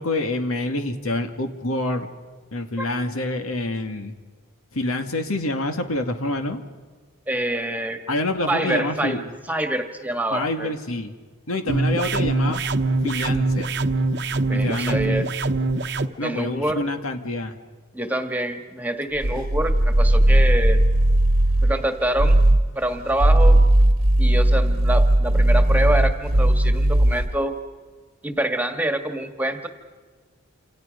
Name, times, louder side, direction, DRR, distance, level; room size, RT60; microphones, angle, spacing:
voice 1, 0.0-2.1 2.5-4.1 4.7-6.6 8.1-9.2 10.3-11.2 11.5-12.6 13.0-13.8 14.5-15.2 16.2-17.6, left 1 dB, 80° left, 6 dB, 2.2 m, -27 dB
voice 2, 7.3-8.0 8.5-9.2 9.5-10.7 14.3-15.3 16.2-16.9 17.9-20.8 21.6-22.4 22.7-23.6 24.2-27.6 28.2-29.7, right 1 dB, 5° right, 6 dB, 1.6 m, -26 dB
sound 1, 11.7-16.1, right 3 dB, 50° right, 1.0 m, -23 dB
sound 2, 19.1-21.8 22.2-22.7 23.1-27.4, right 1 dB, 85° right, 1.4 m, -17 dB
28.5 x 28.0 x 5.3 m, 1.5 s
head